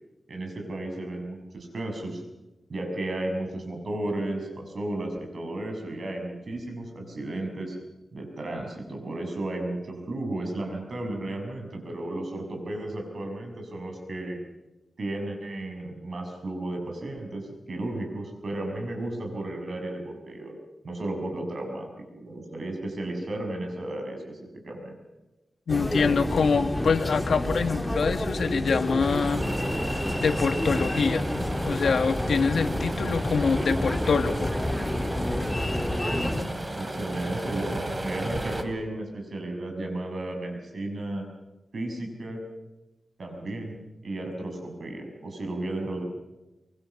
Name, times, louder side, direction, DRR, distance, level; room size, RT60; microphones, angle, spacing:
voice 1, 0.3-2.2 2.7-7.8 8.1-14.4 15.0-20.5 20.8-25.0 36.7-41.2 41.7-42.4 43.2-46.0, right 1 dB, 60° right, 3 dB, 6.3 m, -34 dB
voice 2, 25.7-29.4 30.2-31.2 31.6-34.5, left 5 dB, 85° left, 9 dB, 1.4 m, -25 dB
sound 1, 25.7-36.4, left 1 dB, 10° left, 1.9 m, -29 dB
sound 2, 29.0-38.6, right 1 dB, 25° right, 2.8 m, -34 dB
24.0 x 23.5 x 7.1 m, 1.0 s
wide cardioid pair, 115°, 0 cm